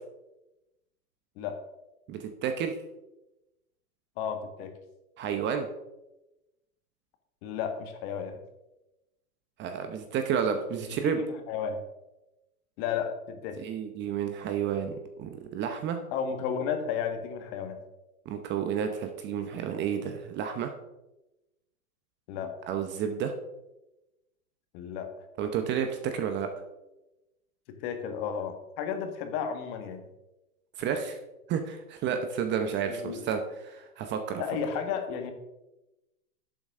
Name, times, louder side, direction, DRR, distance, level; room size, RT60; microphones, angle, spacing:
voice 1, 2.1-2.7 5.2-5.7 9.6-11.2 13.6-16.0 18.3-20.7 22.7-23.3 25.4-26.5 30.8-31.2 31.5-34.4, right 7 dB, 25° right, 6 dB, 0.8 m, -31 dB
voice 2, 4.2-4.7 7.4-8.4 11.0-11.8 12.8-13.6 16.1-17.8 22.3-22.6 24.7-25.1 27.8-30.0 33.0-33.2 34.4-35.3, left 7 dB, 40° left, 6 dB, 1.8 m, -33 dB
11.0 x 8.5 x 3.7 m, 0.96 s
hypercardioid pair, 135°, 45 cm